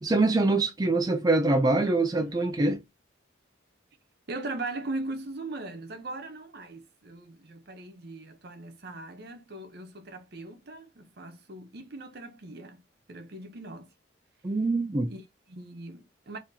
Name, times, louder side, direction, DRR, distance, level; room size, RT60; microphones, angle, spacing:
voice 1, 0.0-2.8 14.4-15.1, right 2 dB, 20° right, 0.3 m, -24 dB
Sigh, 1.9-2.5, left 1 dB, 40° left, 2.0 m, -58 dB
voice 2, 4.3-13.9 15.1-16.4, right 2 dB, 55° right, 0.8 m, -39 dB
3.8 x 2.9 x 2.7 m
head